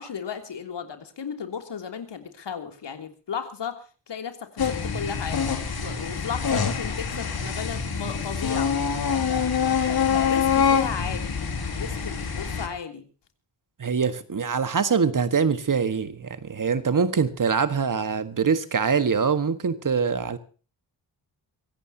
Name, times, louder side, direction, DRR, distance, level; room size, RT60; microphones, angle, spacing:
voice 1, 0.0-8.7 9.3-11.3 11.7-13.0, left 7 dB, 75° left, 7 dB, 3.2 m, -35 dB
sound 1, 4.6-12.7, left 6 dB, 60° left, 2.8 m, -25 dB
voice 2, 13.8-20.4, right 6 dB, 45° right, 11 dB, 1.6 m, -24 dB
24.5 x 16.5 x 2.9 m, 0.37 s
wide cardioid pair, 150°, 42 cm